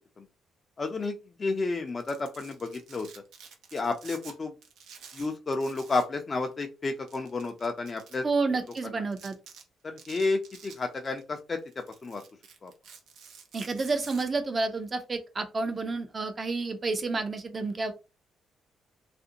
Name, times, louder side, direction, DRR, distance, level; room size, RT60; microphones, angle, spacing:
voice 1, 0.8-3.1 3.7-4.5 5.1-8.3 9.8-12.2 12.6-12.7, left 3 dB, 35° left, 4 dB, 0.4 m, -31 dB
Domestic sounds home sounds, 1.9-4.3 4.6-6.1 6.4-6.5 7.1-8.2 8.7-8.8 9.1-9.6 10.0-11.2 11.6-14.2, right 6 dB, 75° right, 0.6 m, -50 dB
voice 2, 8.2-9.4 13.5-17.9, right 3 dB, 35° right, 7 dB, 0.6 m, -30 dB
2.5 x 2.1 x 2.7 m, 0.29 s
cardioid pair, 90°, 0 cm